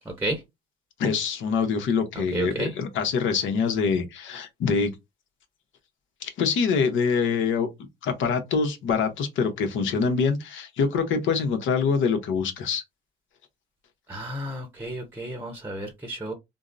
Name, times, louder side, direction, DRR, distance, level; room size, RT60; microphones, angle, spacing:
voice 1, 1.0-4.9 6.2-7.7 8.0-12.8, left 5 dB, 80° left, 0.8 m, -25 dB
voice 2, 2.3-2.7 14.1-16.3, right 2 dB, 10° right, 0.7 m, -31 dB
3.6 x 2.0 x 2.4 m
cardioid pair, 90°, 20 cm